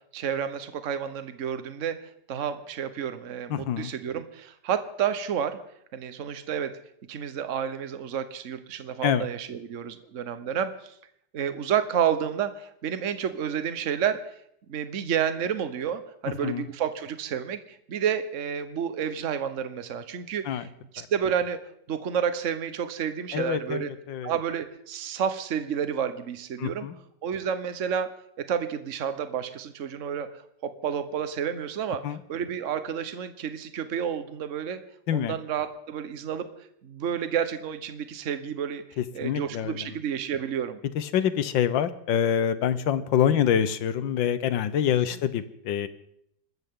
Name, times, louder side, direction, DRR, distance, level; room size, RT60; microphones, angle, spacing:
voice 1, 0.1-2.0 2.3-5.6 5.9-6.7 7.1-10.9 11.3-14.2 14.7-20.7 20.9-21.6 21.9-23.9 24.2-26.9 27.2-28.1 28.5-30.3 30.6-32.0 32.3-34.8 35.1-36.5 36.8-40.8, right 8 dB, 50° right, 10 dB, 1.3 m, -30 dB
voice 2, 3.5-3.9 9.0-9.3 16.4-16.7 20.4-20.7 21.0-21.1 23.3-24.3 26.6-27.0 32.0-32.2 35.1-35.4 39.0-39.9 40.9-45.9, left 9 dB, 85° left, 13 dB, 1.6 m, -26 dB
26.0 x 13.5 x 3.7 m, 0.72 s
omnidirectional pair, 2.0 m